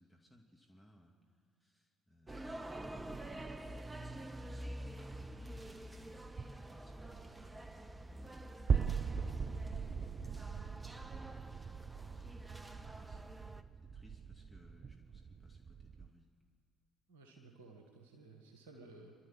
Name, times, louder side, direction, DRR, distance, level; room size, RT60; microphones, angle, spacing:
voice 1, 0.0-6.4 6.7-8.4 11.1-11.8 12.1-13.4 13.9-16.3, equal, ahead, -1 dB, 2.4 m, -63 dB
sound 1, 2.3-13.6, right 1 dB, 20° right, 1.0 m, -47 dB
sound 2, 5.9-16.1, right 6 dB, 45° right, 0.5 m, -40 dB
voice 2, 17.1-19.1, right 3 dB, 70° right, 2 dB, 1.9 m, -56 dB
28.5 x 12.5 x 7.6 m, 2.5 s
figure-of-eight pair, 45°, 0 cm